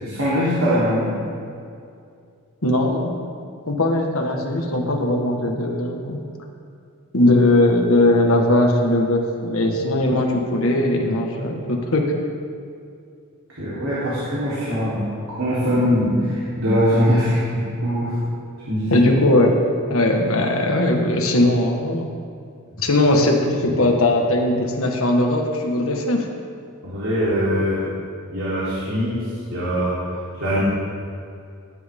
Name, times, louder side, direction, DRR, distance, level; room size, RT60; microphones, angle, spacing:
voice 1, 0.0-1.2 13.6-15.0 15.4-18.1 18.7-19.1 26.8-27.8 28.3-29.9 30.3-30.6, equal, 65° right, -10 dB, 3.8 m, -22 dB
voice 2, 2.6-3.2 3.7-6.2 7.1-12.2 18.9-19.6 19.9-22.1 22.8-26.3, left 1 dB, 65° left, 1 dB, 1.7 m, -19 dB
19.5 x 11.0 x 3.8 m, 2.4 s
head